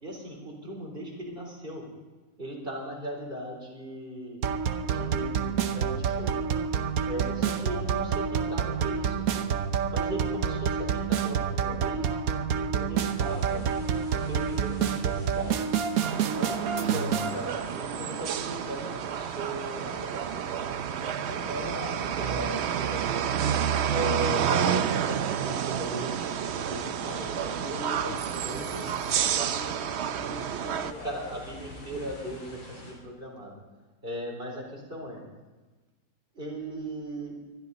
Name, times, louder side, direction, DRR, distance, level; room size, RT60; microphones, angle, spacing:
voice 1, 0.0-1.9 2.4-4.4 4.8-6.3 7.0-9.3 9.9-12.1 12.7-13.7 14.2-15.7 16.4-23.3 23.9-28.2 28.4-28.7 31.0-33.6 34.0-35.2 36.3-37.4, equal, 35° right, -1 dB, 4.0 m, -38 dB
sound 1, 4.4-17.4, right 7 dB, 75° right, 1.3 m, -28 dB
sound 2, 13.1-32.9, left 1 dB, 75° left, 3.9 m, -48 dB
sound 3, 16.0-30.9, right 8 dB, 60° right, 0.8 m, -30 dB
voice 2, 26.9-31.2, left 2 dB, 55° left, 1 dB, 2.4 m, -43 dB
20.5 x 13.0 x 4.1 m, 1.2 s
omnidirectional pair, 1.5 m